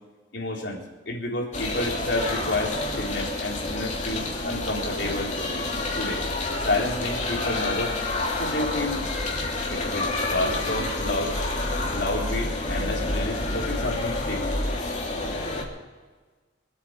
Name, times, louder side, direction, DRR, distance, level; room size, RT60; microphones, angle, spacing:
voice 1, 0.3-5.3 5.9-6.2 6.6-8.0 8.4-9.1 9.7-11.4 11.9-14.5, left 2 dB, 75° left, -1 dB, 3.9 m, -30 dB
sound 1, 1.5-15.6, left 2 dB, 40° left, 2.9 m, -28 dB
25.5 x 8.9 x 5.3 m, 1.3 s
head